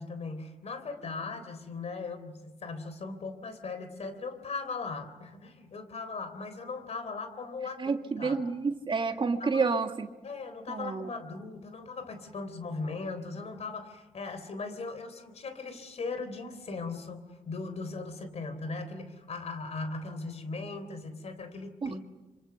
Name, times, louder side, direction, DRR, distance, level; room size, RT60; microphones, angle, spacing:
voice 1, 0.0-8.4 9.1-9.7 10.2-22.0, left 3 dB, 55° left, 10 dB, 3.7 m, -39 dB
voice 2, 7.8-10.1 10.7-11.1 21.8-22.0, right 4 dB, 40° right, 6 dB, 1.9 m, -29 dB
26.5 x 25.5 x 7.1 m, 1.1 s
cardioid pair, 80°, 13 cm